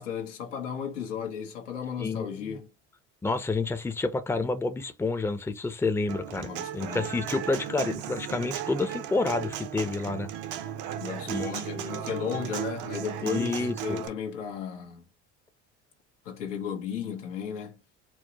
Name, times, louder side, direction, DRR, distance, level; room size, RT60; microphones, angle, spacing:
voice 1, 0.0-2.7 6.4-7.1 11.0-15.0 16.2-17.8, left 7 dB, 90° left, 1.2 m, -35 dB
voice 2, 2.0-2.6 3.2-10.3 11.3-12.0 13.2-14.0, left 3 dB, 5° left, 0.6 m, -29 dB
Human voice / Acoustic guitar, 6.1-14.1, right 10 dB, 60° right, 0.7 m, -36 dB
4.6 x 2.1 x 2.8 m
hypercardioid pair, 75°, 35 cm